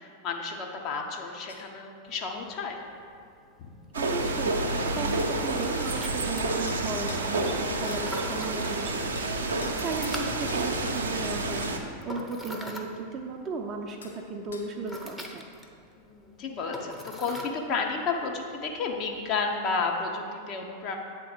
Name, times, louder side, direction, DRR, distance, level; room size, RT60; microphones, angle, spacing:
voice 1, 0.0-2.8 3.6-3.7 9.6-9.8 16.0-21.0, left 4 dB, 35° left, 1 dB, 0.8 m, -32 dB
sound 1, 1.5-1.6 4.3-4.5 5.2-5.3 5.8-5.9 6.3-6.4 6.7-7.3 7.9-8.0 8.6-8.8 9.1-9.3 9.6-9.8 10.1-10.2 10.5-11.8 14.0-14.2 14.5-14.7, left 4 dB, 70° left, 0.9 m, -46 dB
sound 2, 2.1-19.6, left 1 dB, 5° left, 0.8 m, -45 dB
voice 2, 3.9-11.7 12.1-15.5, right 3 dB, 30° right, 2 dB, 0.6 m, -36 dB
sound 3, 3.9-11.8, right 2 dB, 65° right, 0.7 m, -29 dB
8.4 x 3.7 x 6.1 m, 2.3 s
figure-of-eight pair, 90°, 0 cm